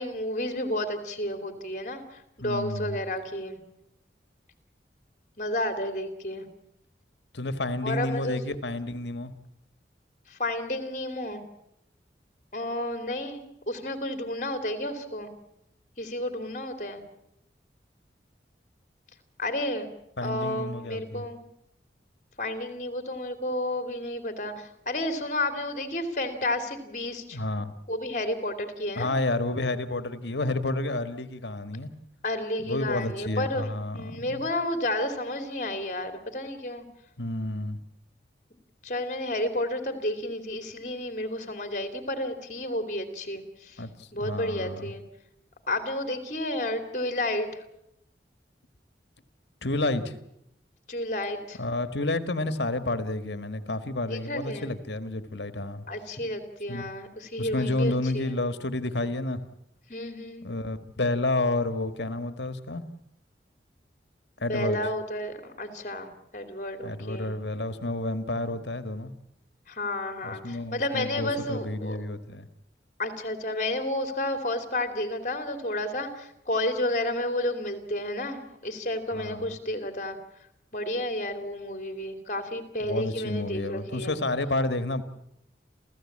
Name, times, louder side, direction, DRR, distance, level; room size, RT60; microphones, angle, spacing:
voice 1, 0.0-3.6 5.4-6.5 7.8-8.4 10.3-11.4 12.5-15.3 16.0-17.0 19.4-19.9 20.2-21.4 22.4-27.4 27.9-29.1 32.2-36.8 38.8-43.8 44.1-45.0 45.7-47.5 50.9-51.6 54.1-54.7 55.9-58.3 59.9-60.5 64.4-67.3 69.7-72.0 73.0-80.2 80.7-84.2, left 1 dB, 40° left, 2.9 m, -31 dB
voice 2, 2.4-3.0 7.3-9.3 20.2-21.2 27.3-27.7 29.0-31.9 32.7-34.4 37.2-37.8 43.8-44.9 49.6-50.1 51.6-55.8 56.7-56.9 57.4-59.4 60.4-62.8 64.4-64.8 66.8-69.1 70.2-72.5 79.1-79.5 82.8-85.0, left 2 dB, 75° left, 1.7 m, -30 dB
29.0 x 15.0 x 8.7 m
head